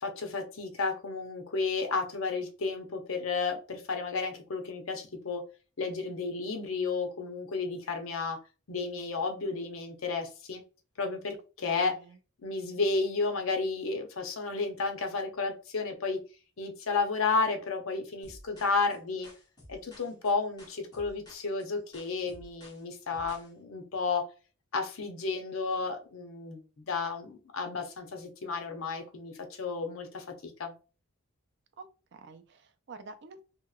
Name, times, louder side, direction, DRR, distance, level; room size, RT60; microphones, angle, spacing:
voice 1, 0.0-5.4 5.8-8.4 8.7-10.6 11.0-11.9 12.4-16.2 16.6-19.3 19.7-24.2 24.7-30.7, left 4 dB, 70° left, 0.7 m, -32 dB
voice 2, 11.7-12.2 31.8-33.4, right 4 dB, 55° right, 0.4 m, -48 dB
sound 1, 18.2-23.5, equal, 20° left, 0.9 m, -53 dB
2.9 x 2.8 x 2.3 m
head